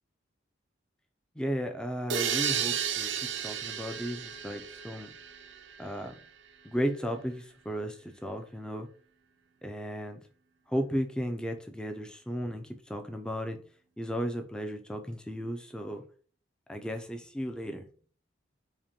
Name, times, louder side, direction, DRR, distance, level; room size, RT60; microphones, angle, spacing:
voice 1, 1.4-5.1 5.8-6.1 6.6-8.9 9.6-10.2 10.7-13.6 14.0-16.0 16.7-17.9, equal, 5° left, 5 dB, 0.3 m, -35 dB
sound 1, 2.1-5.8, right 8 dB, 75° right, 0.4 m, -33 dB
5.0 x 2.2 x 2.8 m, 0.43 s
head